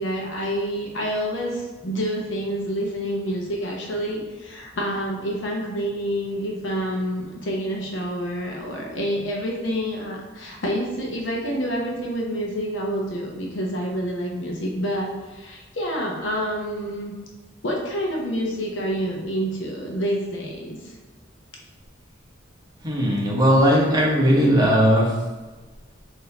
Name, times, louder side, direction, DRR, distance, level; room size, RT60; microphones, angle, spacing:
voice 1, 0.0-17.1 17.6-20.9, equal, 70° left, -1 dB, 0.8 m, -28 dB
voice 2, 22.8-25.1, equal, 20° right, -3 dB, 0.9 m, -18 dB
4.0 x 2.7 x 4.3 m, 1.2 s
head